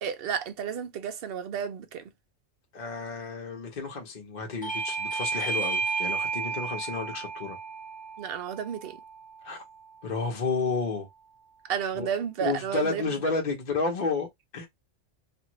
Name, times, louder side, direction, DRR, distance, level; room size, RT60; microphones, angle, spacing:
voice 1, 0.0-2.0 8.2-9.0 11.6-13.0, right 8 dB, 60° right, 0.7 m, -32 dB
voice 2, 2.7-7.6 9.4-9.6 10.0-11.1 11.9-12.1 12.4-14.7, left 4 dB, 40° left, 0.9 m, -31 dB
Bell / Doorbell, 4.6-9.8, right 5 dB, 10° left, 0.5 m, -33 dB
2.6 x 2.5 x 3.0 m
omnidirectional pair, 1.2 m